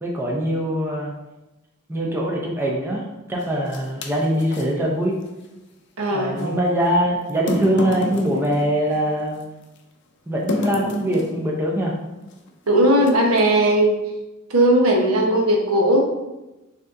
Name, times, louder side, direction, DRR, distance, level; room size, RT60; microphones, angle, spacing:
voice 1, 0.0-1.1 1.9-5.2 6.1-9.4 10.3-11.9, equal, 10° right, -2 dB, 0.6 m, -23 dB
sound 1, 3.4-4.7 6.4-6.5 7.3-9.4 10.5-11.4 12.3-12.5 13.0-13.5, left 2 dB, 55° left, 0.5 m, -30 dB
voice 2, 6.0-6.6 12.7-14.0 14.5-16.1, right 1 dB, 85° right, 0 dB, 0.9 m, -18 dB
5.9 x 2.7 x 2.6 m, 1.0 s
head